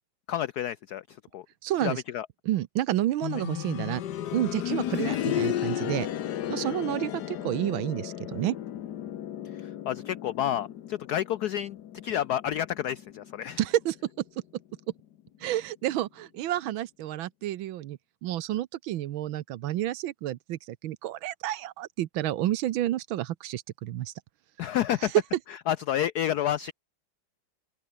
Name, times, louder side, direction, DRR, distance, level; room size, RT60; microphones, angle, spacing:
voice 1, 0.3-1.5 1.8-2.3 3.3-3.4 5.0-5.4 9.5-11.8 12.0-13.6 24.6-25.1 25.7-26.7, left 11 dB, 80° left, 0.8 m, -30 dB
voice 2, 1.6-2.0 2.5-4.0 4.3-6.1 6.5-8.6 13.6-14.0 15.4-24.1, right 13 dB, 75° right, 1.5 m, -30 dB
sound 1, 3.2-14.0 14.3-14.4 15.3-15.4, left 11 dB, 60° left, 1.3 m, -34 dB
open air
omnidirectional pair, 2.3 m